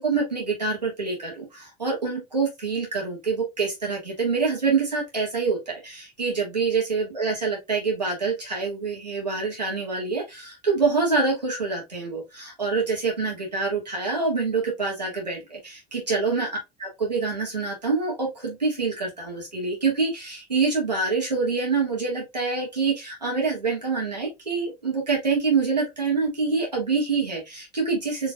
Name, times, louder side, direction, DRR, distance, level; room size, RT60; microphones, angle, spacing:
voice 1, 0.0-16.5 16.8-28.3, right 4 dB, 90° right, -3 dB, 1.7 m, -26 dB
4.6 x 3.2 x 2.4 m, 0.20 s
figure-of-eight pair, 65°, 21 cm